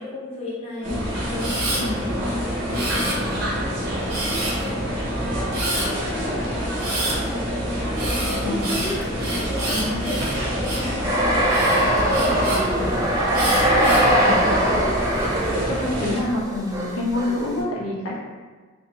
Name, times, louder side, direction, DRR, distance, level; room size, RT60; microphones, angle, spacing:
voice 1, 0.0-14.1, left 1 dB, 30° left, -8 dB, 0.7 m, -36 dB
sound 1, 0.8-16.2, equal, 55° right, 0.6 m, -26 dB
Camera, 1.4-1.8 2.7-3.5 4.1-4.7 5.5-5.9 6.8-7.2 8.0-10.9 11.5-12.6 13.3-14.1 14.7-15.2, right 1 dB, 90° right, 0.9 m, -29 dB
voice 2, 8.4-8.7 9.7-10.1 15.7-18.2, left 1 dB, 80° left, -4 dB, 0.6 m, -27 dB
sound 2, 11.0-17.6, right 1 dB, 15° right, 0.3 m, -22 dB
2.5 x 2.1 x 2.8 m, 1.4 s
head